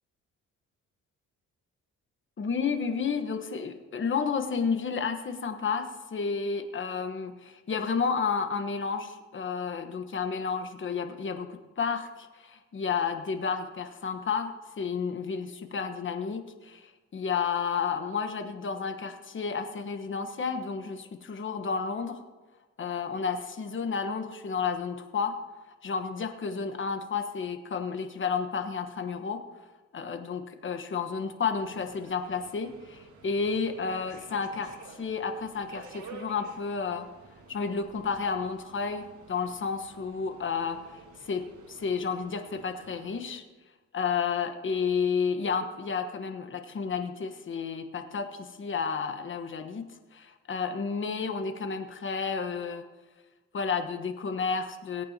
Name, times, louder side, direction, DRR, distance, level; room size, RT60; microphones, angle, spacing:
voice 1, 2.4-22.2 22.8-25.4 25.8-29.4 29.9-37.1 37.5-43.4 43.9-52.8 53.5-55.0, left 5 dB, 40° left, 7 dB, 1.3 m, -31 dB
Subway metro underground, 31.6-43.2, right 5 dB, 75° right, 1.8 m, -51 dB
17.5 x 8.9 x 2.9 m, 1.3 s
cardioid pair, 90°, 30 cm